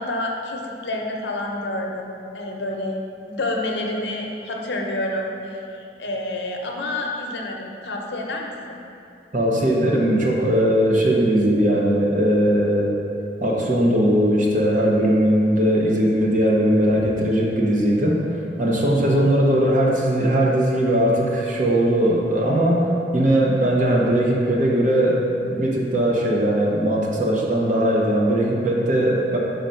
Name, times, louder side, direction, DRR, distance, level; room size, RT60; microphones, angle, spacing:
voice 1, 0.0-8.8, left 1 dB, 80° left, 0 dB, 0.8 m, -28 dB
voice 2, 9.3-12.9 13.4-18.2 18.6-29.4, right 1 dB, 45° right, -2 dB, 0.9 m, -19 dB
5.2 x 3.9 x 5.7 m, 2.7 s
head